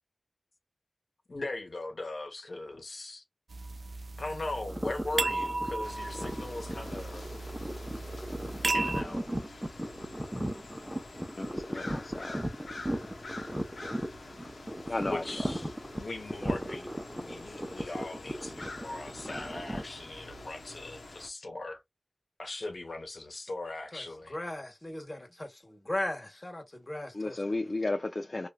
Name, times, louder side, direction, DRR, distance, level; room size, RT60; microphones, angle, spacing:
voice 1, 1.3-3.2 4.2-7.3 8.7-9.2 15.1-21.8 22.4-24.4, left 2 dB, 70° left, 1.1 m, -39 dB
sound 1, 3.5-9.0, right 2 dB, 80° right, 0.3 m, -35 dB
sound 2, 4.7-19.8, equal, 10° right, 0.9 m, -37 dB
sound 3, 5.8-21.3, left 2 dB, 90° left, 0.8 m, -47 dB
voice 2, 11.4-12.5 14.9-15.2 27.1-28.5, left 2 dB, 50° left, 0.5 m, -33 dB
voice 3, 24.3-27.5, left 1 dB, 35° left, 1.3 m, -37 dB
3.0 x 2.5 x 2.3 m
cardioid pair, 40°, 0 cm